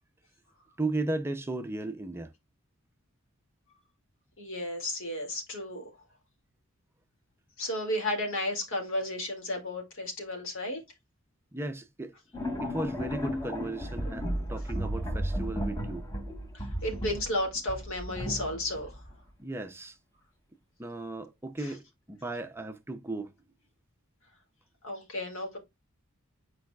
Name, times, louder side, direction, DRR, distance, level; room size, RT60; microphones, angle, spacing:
voice 1, 0.8-2.3 11.5-12.1 12.6-16.1 19.4-20.0 20.8-23.3, right 2 dB, 10° right, 0.5 m, -35 dB
voice 2, 4.4-5.8 7.6-10.8 16.5-19.0 21.6-21.7 24.8-25.6, left 1 dB, 65° left, 2.2 m, -33 dB
sound 1, 12.3-19.2, equal, 20° left, 1.1 m, -34 dB
8.7 x 4.7 x 2.3 m
head